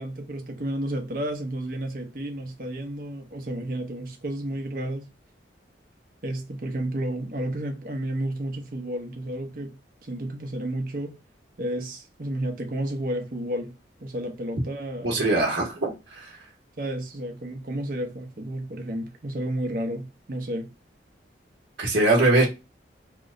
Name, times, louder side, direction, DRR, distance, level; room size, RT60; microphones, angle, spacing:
voice 1, 0.0-5.1 6.2-11.2 11.6-13.7 14.0-15.2 16.8-20.7, right 1 dB, 50° right, 0.8 m, -31 dB
voice 2, 15.0-16.3 21.8-22.5, right 2 dB, 85° right, 0.9 m, -22 dB
2.9 x 2.1 x 3.6 m
head